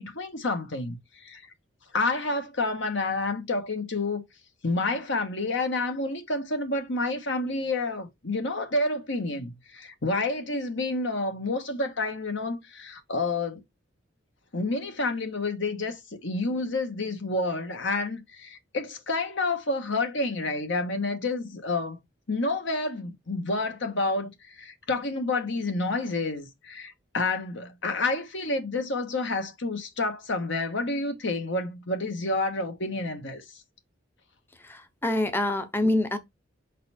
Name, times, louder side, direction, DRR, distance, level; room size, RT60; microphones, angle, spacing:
voice 1, 0.0-1.4 1.9-4.2 4.6-13.6 14.5-22.0 22.3-33.4, left 2 dB, 65° left, 1.3 m, -29 dB
voice 2, 34.6-36.2, left 1 dB, 10° left, 0.6 m, -26 dB
5.4 x 4.1 x 4.2 m
head